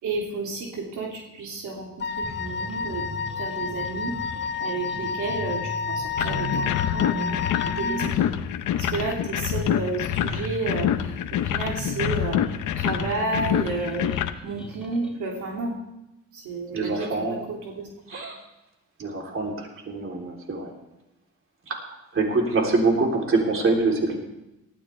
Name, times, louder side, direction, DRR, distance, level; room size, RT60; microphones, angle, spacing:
voice 1, 0.0-3.0 3.4-8.3 8.7-15.8 16.3-17.9, right 3 dB, 80° right, -1 dB, 2.7 m, -32 dB
Wind instrument woodwind instrument, 2.0-8.1, left 6 dB, 35° left, 0.6 m, -30 dB
sound 1, 2.2-15.2, left 1 dB, 5° right, 3.9 m, -38 dB
sound 2, 6.2-14.3, left 11 dB, 80° left, 0.9 m, -26 dB
voice 2, 16.7-17.4 18.1-18.4 19.0-20.7 21.7-21.8 22.1-24.2, right 3 dB, 45° right, 0 dB, 3.5 m, -24 dB
18.5 x 13.5 x 3.4 m, 0.93 s
cardioid pair, 90°, 30 cm